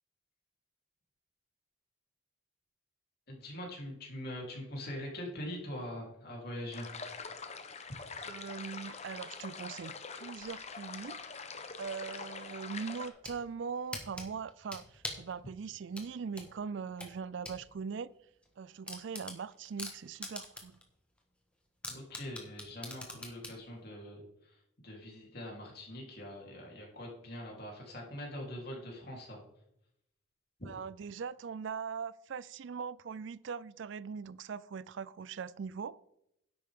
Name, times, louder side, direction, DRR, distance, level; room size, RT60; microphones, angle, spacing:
voice 1, 3.3-6.9 21.9-29.4 30.6-30.7, left 1 dB, 50° left, 3.6 m, -43 dB
sound 1, 6.7-13.1, left 5 dB, 35° left, 0.9 m, -44 dB
voice 2, 8.2-11.2 11.8-18.1 18.6-20.7 30.7-36.1, right 6 dB, 60° right, 0.4 m, -41 dB
sound 2, 12.9-13.4 13.9-15.3 15.9-17.6 18.0-18.1 18.4-18.5 18.9-20.8 21.2-21.3 21.8-23.6, left 1 dB, 5° left, 1.5 m, -42 dB
10.5 x 8.7 x 3.7 m
head